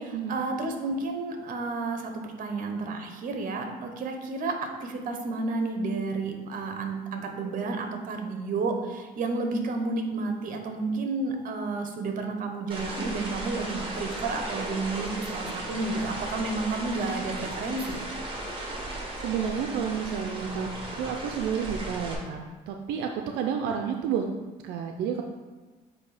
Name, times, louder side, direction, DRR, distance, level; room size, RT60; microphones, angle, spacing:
voice 1, 0.0-17.9, right 3 dB, 55° right, 5 dB, 1.0 m, -31 dB
sound 1, 12.7-22.1, right 1 dB, 30° right, 1.6 m, -36 dB
voice 2, 18.7-20.7 21.0-24.3 24.6-25.2, right 7 dB, 85° right, 3 dB, 0.5 m, -31 dB
8.2 x 2.8 x 4.9 m, 1.3 s
cardioid pair, 110°, 17 cm